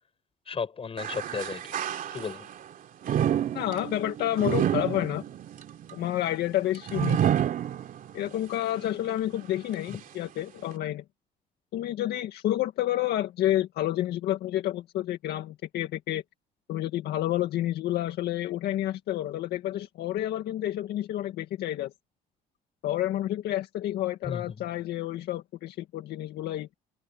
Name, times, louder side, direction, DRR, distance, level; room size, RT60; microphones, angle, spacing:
voice 1, 0.5-1.6 2.1-2.5 9.9-10.0 24.2-24.6, left 6 dB, 35° left, 7.7 m, -34 dB
sound 1, 1.0-2.5 3.0-8.3 8.8-8.9 9.7-9.8, right 10 dB, 55° right, 2.9 m, -29 dB
voice 2, 3.5-5.2 5.9-7.2 8.1-11.0 11.7-16.2 16.7-21.9 22.8-26.7, left 13 dB, 75° left, 1.9 m, -29 dB
cardioid pair, 110°, 17 cm